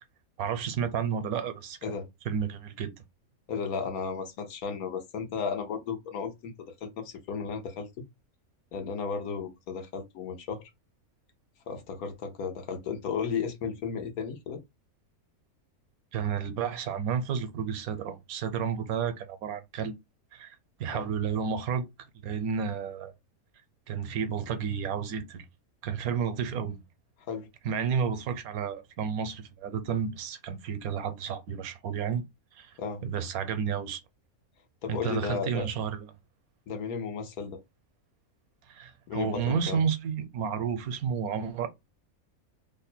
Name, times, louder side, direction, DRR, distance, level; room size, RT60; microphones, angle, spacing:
voice 1, 0.4-1.8 2.2-2.9 16.1-19.9 20.3-21.9 22.2-23.1 23.9-25.4 25.8-26.8 27.6-32.2 32.5-32.7 33.0-34.0 34.9-36.1 38.7-41.7, right 7 dB, 80° right, 1.2 m, -31 dB
voice 2, 3.5-6.5 6.8-7.9 8.7-10.6 11.7-14.6 20.9-21.1 27.3-27.5 32.8-33.0 34.8-35.7 36.7-37.6 39.1-39.8, left 6 dB, 75° left, 1.3 m, -34 dB
3.1 x 2.2 x 4.3 m
omnidirectional pair, 1.5 m